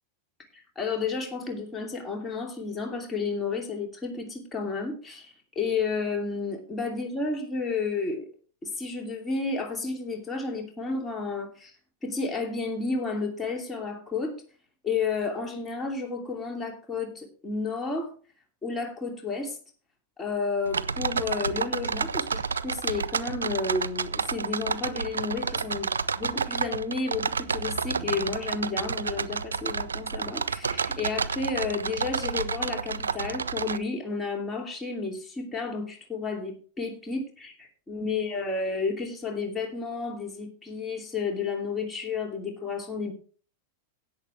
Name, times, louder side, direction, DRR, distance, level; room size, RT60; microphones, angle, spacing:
voice 1, 0.5-8.3 8.6-11.7 12.0-14.4 14.8-18.1 18.6-19.6 20.2-43.1, left 4 dB, 15° left, 1 dB, 2.7 m, -31 dB
sound 1, 20.7-33.8, right 5 dB, 85° right, 0.5 m, -30 dB
17.5 x 6.8 x 3.3 m, 0.40 s
hypercardioid pair, 100°, 0 cm